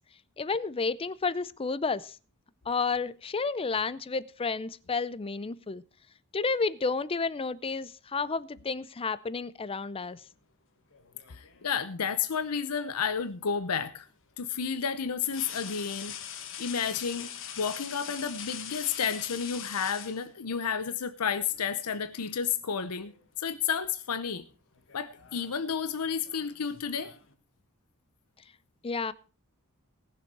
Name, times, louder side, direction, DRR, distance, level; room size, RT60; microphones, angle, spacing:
voice 1, 0.4-2.1 2.7-5.8 6.3-10.2 28.8-29.1, left 4 dB, 25° left, 18 dB, 0.5 m, -31 dB
sound 1, 10.9-11.8 13.5-13.7 15.2-20.7 21.9-22.1 22.5-23.2 23.5-23.9 24.7-27.3, left 9 dB, 60° left, 1.5 m, -43 dB
voice 2, 11.3-14.1 14.4-16.2 16.6-23.1 23.4-24.4 24.9-27.1, left 6 dB, 90° left, 12 dB, 0.7 m, -31 dB
18.5 x 7.0 x 4.6 m, 0.37 s
head